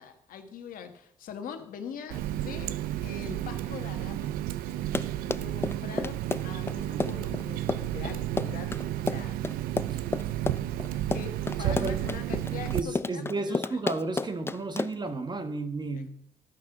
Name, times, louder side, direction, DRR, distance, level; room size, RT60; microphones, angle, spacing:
voice 1, 0.0-4.3 5.3-9.4 10.9-13.9 15.9-16.1, left 7 dB, 75° left, 1.3 m, -43 dB
Water tap faucet, 2.1-12.8, right 13 dB, 90° right, 0.5 m, -32 dB
Run, 4.7-15.1, left 3 dB, 15° left, 0.4 m, -32 dB
voice 2, 11.6-12.0 12.7-16.1, right 3 dB, 30° right, 1.4 m, -33 dB
13.0 x 5.9 x 6.0 m
cardioid pair, 75°, 14 cm